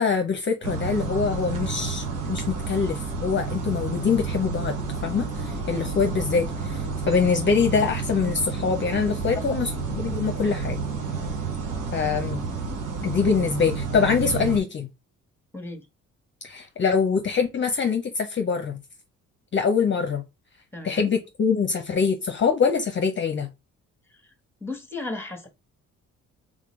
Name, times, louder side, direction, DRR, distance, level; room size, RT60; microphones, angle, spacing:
voice 1, 0.0-4.7 5.0-9.7 10.0-10.8 11.9-12.4 13.0-14.9 16.4-18.8 19.5-20.2 20.8-23.5, left 5 dB, 40° left, 0.7 m, -24 dB
sound 1, 0.6-14.6, right 5 dB, 90° right, 1.2 m, -30 dB
voice 2, 15.5-15.9 20.7-21.1 24.1-24.2 24.6-25.5, left 2 dB, 10° left, 1.3 m, -35 dB
3.7 x 3.7 x 3.1 m
cardioid pair, 90°, 30 cm